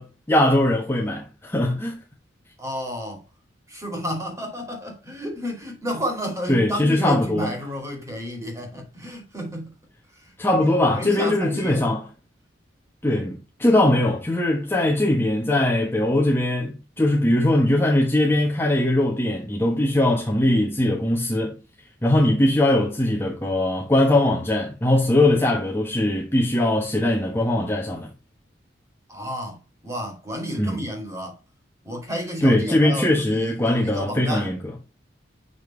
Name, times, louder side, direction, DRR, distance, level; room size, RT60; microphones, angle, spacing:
voice 1, 0.0-2.0 6.5-7.5 10.4-12.1 13.0-21.6 22.0-28.1 30.6-30.8 32.4-34.7, left 1 dB, 10° left, 1.2 m, -21 dB
voice 2, 2.6-3.2 3.7-9.7 10.1-10.2 11.0-11.8 29.1-31.3 31.8-34.5, equal, 15° right, 2.8 m, -31 dB
6.8 x 6.0 x 3.2 m
head